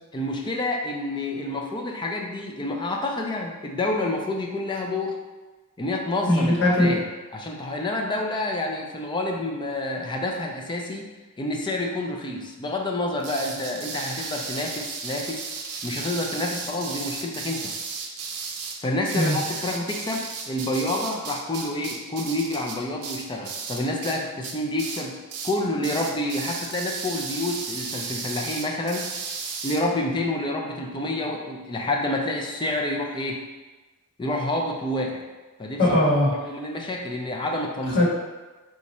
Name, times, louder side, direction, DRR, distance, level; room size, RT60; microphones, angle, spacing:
voice 1, 0.1-5.2 5.8-7.0 7.3-11.1 11.4-15.5 15.8-17.7 18.8-25.2 25.4-29.1 29.6-33.5 34.2-35.2 35.6-35.8 36.4-38.0, left 1 dB, 20° left, 0 dB, 0.5 m, -28 dB
voice 2, 6.3-6.9 19.1-19.4 35.8-36.3 37.9-38.0, left 1 dB, 50° left, -6 dB, 1.3 m, -19 dB
sound 1, 13.2-24.2 24.4-25.0 25.3-25.6 25.8-29.8, right 5 dB, 75° right, 0.6 m, -34 dB
4.0 x 2.5 x 4.1 m, 1.2 s
head